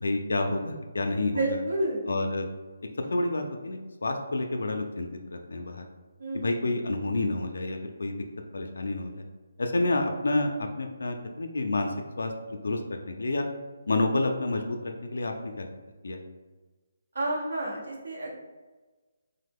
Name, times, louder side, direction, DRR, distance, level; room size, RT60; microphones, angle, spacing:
voice 1, 0.0-1.6 2.1-2.5 3.1-5.9 6.3-8.2 8.5-9.2 9.6-13.4 13.9-15.7 16.0-16.2, left 2 dB, 85° left, 4 dB, 0.3 m, -29 dB
voice 2, 1.3-2.0 6.2-6.5 17.1-18.3, right 2 dB, 80° right, -3 dB, 0.8 m, -30 dB
2.9 x 2.1 x 3.4 m, 1.3 s
hypercardioid pair, 170°, 0 cm